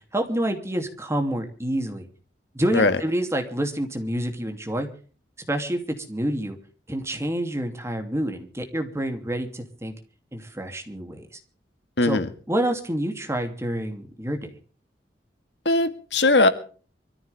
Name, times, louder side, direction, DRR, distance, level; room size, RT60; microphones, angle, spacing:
voice 1, 0.0-2.1 2.5-4.9 5.5-6.6 6.9-9.9 10.3-11.3 12.0-12.2 12.5-14.5, right 1 dB, 15° right, 2.8 m, -28 dB
voice 2, 12.0-12.3 15.7-16.5, left 2 dB, 75° left, 1.9 m, -19 dB
24.0 x 14.5 x 3.5 m
head